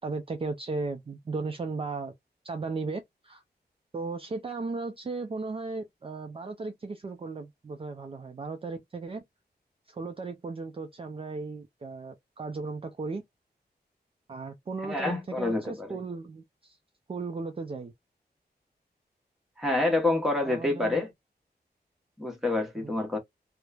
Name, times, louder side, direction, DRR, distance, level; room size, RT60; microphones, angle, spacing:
voice 1, 0.0-2.1 2.4-3.4 3.9-9.2 9.9-13.2 14.3-16.8 17.1-17.9 20.4-21.0 22.8-23.0, right 3 dB, 35° right, 0.4 m, -36 dB
voice 2, 14.8-16.0 19.6-21.1 22.2-23.2, left 2 dB, ahead, 0.9 m, -27 dB
3.0 x 2.0 x 2.3 m
wide cardioid pair, 145°, 17 cm